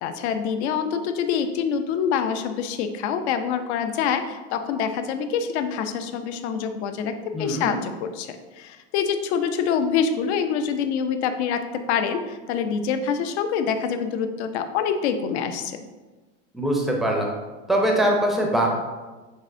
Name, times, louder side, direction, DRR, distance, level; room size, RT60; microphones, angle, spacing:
voice 1, 0.0-15.8, left 7 dB, 80° left, 8 dB, 0.5 m, -26 dB
voice 2, 7.3-7.7 16.5-17.3 17.7-18.7, right 1 dB, ahead, 0 dB, 0.4 m, -22 dB
5.3 x 3.5 x 2.5 m, 1.2 s
supercardioid pair, 145°, 33 cm